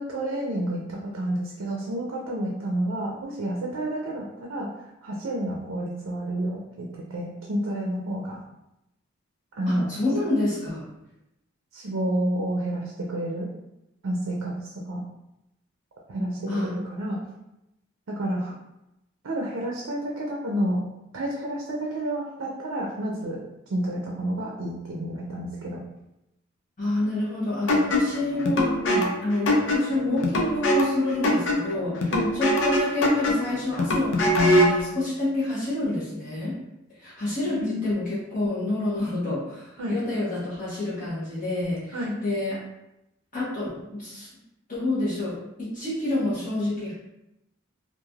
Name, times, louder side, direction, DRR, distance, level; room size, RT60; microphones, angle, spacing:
voice 1, 0.0-4.7 5.0-8.4 9.6-9.9 11.7-13.5 14.0-14.5 14.9-15.0 16.1-17.2 18.1-18.5 19.2-20.8 21.1-23.4 23.7-25.8 28.9-29.1 32.1-32.3 37.6-37.9 39.8-40.0 41.9-42.1, right 1 dB, 85° right, -2 dB, 0.5 m, -29 dB
voice 2, 9.7-10.9 16.5-16.8 26.8-36.6 37.0-42.0 42.2-42.6 43.3-44.3 44.7-46.9, left 2 dB, 40° left, -9 dB, 0.9 m, -28 dB
sound 1, 27.7-34.8, left 1 dB, 65° left, 0.5 m, -23 dB
3.1 x 2.4 x 2.3 m, 0.88 s
head